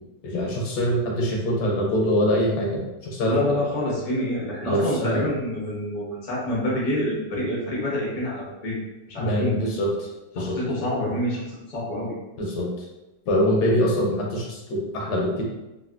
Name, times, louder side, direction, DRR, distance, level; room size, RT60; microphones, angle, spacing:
voice 1, 0.2-2.8 3.1-3.4 4.7-5.3 9.2-9.9 10.3-10.6 12.4-12.7 13.3-15.4, equal, 75° left, -2 dB, 1.1 m, -23 dB
voice 2, 3.3-8.8 9.1-9.6 10.4-11.4 11.7-12.1, left 1 dB, 55° left, -5 dB, 0.4 m, -27 dB
3.2 x 2.4 x 2.3 m, 1.0 s
omnidirectional pair, 1.9 m